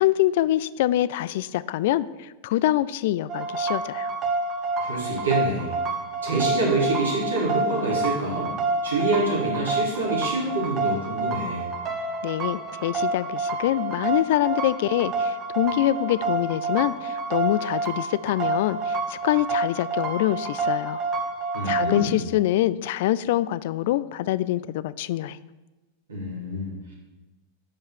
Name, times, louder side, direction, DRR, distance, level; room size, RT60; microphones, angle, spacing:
voice 1, 0.0-4.1 12.2-21.0 21.6-25.4, left 14 dB, 50° left, 18 dB, 0.3 m, -25 dB
sound 1, 3.3-22.0, right 3 dB, 30° right, 1.2 m, -28 dB
voice 2, 4.8-5.7 6.2-8.5 8.8-11.6 21.5-22.2 26.1-26.9, right 2 dB, 70° right, -5 dB, 3.7 m, -26 dB
10.5 x 5.5 x 6.4 m, 1.1 s
figure-of-eight pair, 90°, 0 cm